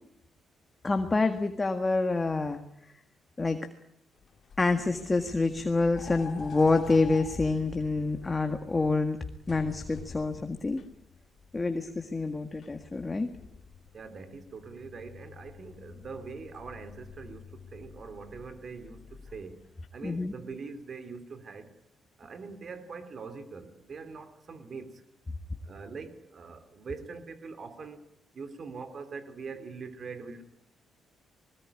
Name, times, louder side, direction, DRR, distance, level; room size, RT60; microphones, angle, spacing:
voice 1, 0.8-2.6 3.4-3.6 4.6-9.2 9.5-10.8 11.5-13.3 20.0-20.3, left 3 dB, 20° left, 1.8 m, -27 dB
sound 1, 4.2-19.9, left 6 dB, 55° left, 2.6 m, -47 dB
voice 2, 13.9-19.6 19.9-21.7 22.2-25.0 25.6-28.0 28.3-30.4, right 4 dB, 45° right, 3.2 m, -43 dB
21.0 x 19.5 x 9.9 m
cardioid pair, 90°, 0 cm